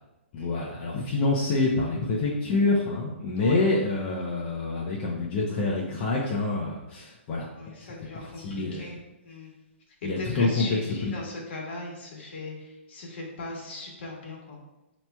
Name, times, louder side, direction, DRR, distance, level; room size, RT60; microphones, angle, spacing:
voice 1, 0.3-7.5 8.1-8.8 10.0-11.1, left 3 dB, 35° left, -5 dB, 0.7 m, -27 dB
voice 2, 7.5-9.0 9.2-9.5 10.0-14.6, left 2 dB, 60° left, -1 dB, 1.3 m, -38 dB
5.7 x 3.0 x 2.2 m, 0.96 s
hypercardioid pair, 140°, 7 cm